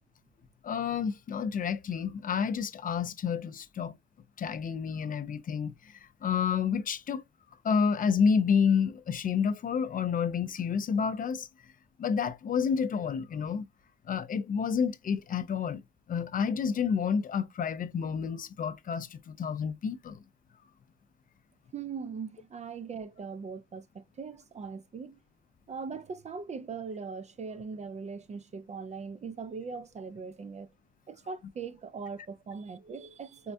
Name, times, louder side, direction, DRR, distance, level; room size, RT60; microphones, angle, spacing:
voice 1, 0.6-4.0 4.4-7.2 7.6-11.5 12.0-13.7 14.1-15.8 16.1-20.2, left 6 dB, 45° left, 0.5 m, -29 dB
voice 2, 21.7-25.2 25.7-30.7 31.1-33.5, right 5 dB, 35° right, 0.4 m, -40 dB
4.4 x 2.2 x 2.6 m
cardioid pair, 90°, 20 cm